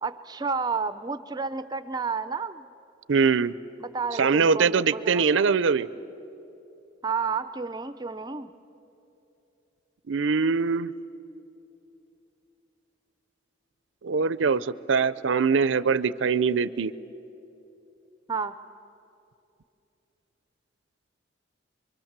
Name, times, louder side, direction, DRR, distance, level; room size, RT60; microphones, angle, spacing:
voice 1, 0.0-2.7 3.8-5.2 7.0-8.5 18.3-18.6, right 5 dB, 20° right, 12 dB, 0.5 m, -31 dB
voice 2, 3.1-3.5 4.2-5.9 10.1-10.9 14.0-16.9, right 5 dB, 80° right, 17 dB, 0.5 m, -23 dB
25.0 x 24.0 x 7.4 m, 2.9 s
head